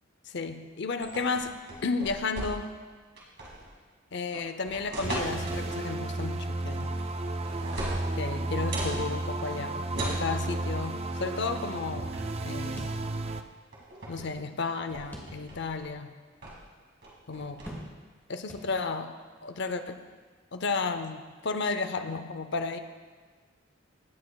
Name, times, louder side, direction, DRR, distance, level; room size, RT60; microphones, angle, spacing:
voice 1, 0.3-1.5 1.8-2.7 4.1-6.9 8.2-12.1 12.4-12.9 14.1-16.2 17.3-17.6 18.3-19.1 19.4-20.0 20.5-22.8, left 4 dB, 60° left, 9 dB, 0.6 m, -33 dB
sound 1, 1.0-2.8 3.2-3.7 4.3-5.8 6.8-7.2 7.4-9.0 9.9-10.3 11.5-11.7 12.1-12.4 13.3-13.4 13.7-14.3 14.7-15.9 16.4-16.7 17.0-17.7, right 1 dB, 60° right, 2.4 m, -38 dB
sound 2, 5.0-13.4, right 2 dB, 30° right, 0.4 m, -33 dB
sound 3, 12.8-13.6 13.9-14.0 15.1-15.8 16.3-16.4 17.7-18.2 18.5-19.1, equal, 10° left, 1.4 m, -45 dB
17.0 x 8.2 x 2.4 m, 1.4 s
head